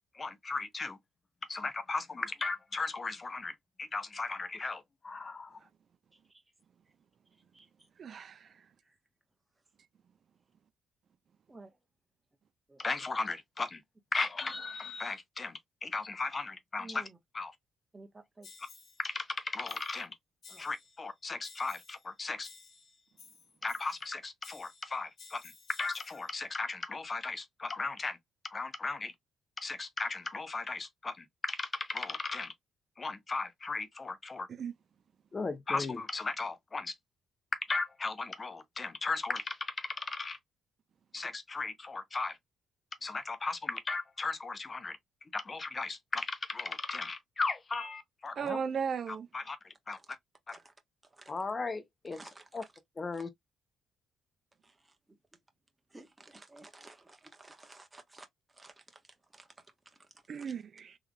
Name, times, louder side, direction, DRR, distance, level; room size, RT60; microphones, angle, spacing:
voice 1, 0.1-1.0 1.5-5.6 12.8-13.8 14.1-17.0 17.3-17.5 19.0-20.1 20.6-22.5 23.6-28.2 28.5-29.1 29.6-32.5 33.0-34.5 35.3-36.9 37.7-40.4 41.1-42.4 43.0-45.0 45.3-48.6 49.1-50.0 51.3-52.2 52.5-52.6 53.0-53.3, left 3 dB, 30° left, 0.7 m, -36 dB
voice 2, 6.1-6.4 6.8-6.9 7.3-7.9 8.8-9.0 11.5-11.8 12.7-12.8 16.8-17.2 17.9-18.6 20.5-20.7 50.0-50.1 50.5-50.7 51.0-51.4 52.1-52.7 53.1-53.2 54.6-55.2 55.9-60.5, right 2 dB, 15° right, 1.1 m, -55 dB
voice 3, 8.0-8.7 34.6-34.7 48.4-49.3 60.3-61.0, right 6 dB, 55° right, 0.4 m, -36 dB
sound 1, 18.4-19.1 19.7-20.1 20.4-21.1 21.4-22.1 22.4-24.1 24.4-26.3, left 5 dB, 50° left, 1.7 m, -55 dB
3.6 x 3.2 x 2.3 m
cardioid pair, 90°, 0 cm